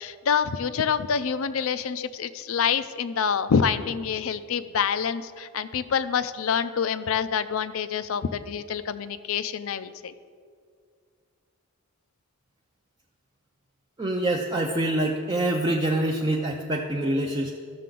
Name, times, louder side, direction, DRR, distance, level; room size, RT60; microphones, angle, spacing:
voice 1, 0.0-10.1, left 7 dB, 65° left, 13 dB, 0.4 m, -26 dB
voice 2, 14.0-17.5, right 1 dB, 20° right, 0 dB, 0.4 m, -25 dB
13.5 x 6.7 x 3.8 m, 2.1 s
head